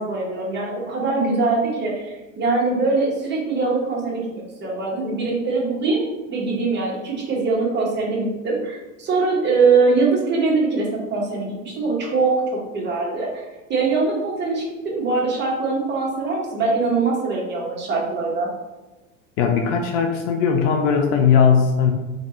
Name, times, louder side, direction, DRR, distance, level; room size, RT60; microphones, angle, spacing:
voice 1, 0.0-12.4 12.7-13.4 13.7-18.5, right 3 dB, 25° right, -3 dB, 1.4 m, -22 dB
voice 2, 19.4-21.9, left 6 dB, 45° left, 3 dB, 0.6 m, -18 dB
3.8 x 3.5 x 3.0 m, 1.1 s
figure-of-eight pair, 80°, 39 cm